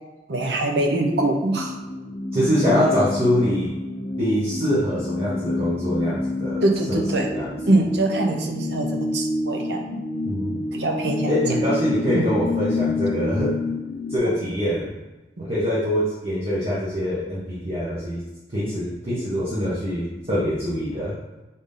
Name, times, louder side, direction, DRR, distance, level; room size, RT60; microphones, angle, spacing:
voice 1, 0.3-1.7 6.6-7.3 7.7-9.9 10.7-11.3 12.1-12.3, right 2 dB, 70° right, 3 dB, 0.7 m, -23 dB
sound 1, 1.6-14.2, left 2 dB, 30° left, 0.5 m, -28 dB
voice 2, 2.3-3.7 4.2-7.5 10.2-10.6 11.3-13.5 14.1-14.9 15.4-18.2 18.5-21.1, equal, 35° right, -9 dB, 1.0 m, -24 dB
3.9 x 3.7 x 3.6 m, 1.1 s
head